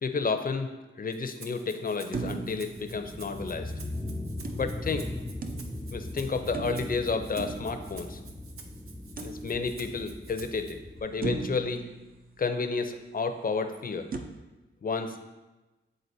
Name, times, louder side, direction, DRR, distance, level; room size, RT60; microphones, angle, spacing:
voice 1, 0.0-0.7 1.0-3.7 4.5-5.1 5.9-8.2 9.2-11.8 12.4-14.1 14.8-15.2, left 4 dB, 45° left, 8 dB, 0.6 m, -31 dB
Rattle (instrument), 1.1-10.7, right 4 dB, 85° right, 0.7 m, -51 dB
sound 1, 2.1-3.7 4.4-6.1 6.5-8.5 9.2-10.0 10.5-10.6 11.2-12.9 14.1-14.2, right 4 dB, 45° right, 0.6 m, -39 dB
sound 2, 2.8-11.0, left 1 dB, ahead, 0.5 m, -39 dB
9.1 x 3.8 x 2.7 m, 1.1 s
cardioid pair, 60°, 21 cm